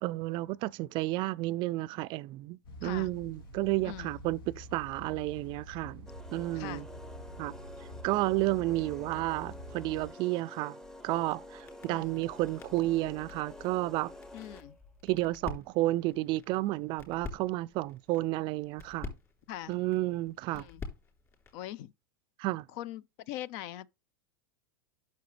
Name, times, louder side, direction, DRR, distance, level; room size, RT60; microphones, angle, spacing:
voice 1, 0.0-6.8 7.4-7.5 8.0-10.8 11.0-14.1 15.0-19.1 19.7-20.7 22.4-22.7, right 18 dB, 45° right, 0.4 m, -31 dB
sound 1, 2.6-10.1, equal, 80° left, 2.5 m, -47 dB
voice 2, 3.8-4.2 6.5-6.9 11.9-12.2 14.3-14.8 19.5-19.7 20.5-20.8 21.5-21.9 22.7-23.9, left 13 dB, 55° left, 0.5 m, -41 dB
sound 2, 6.1-14.8, left 1 dB, 5° left, 0.8 m, -49 dB
sound 3, 10.8-21.7, left 4 dB, 25° left, 3.6 m, -48 dB
9.3 x 6.6 x 3.3 m
hypercardioid pair, 115°, 11 cm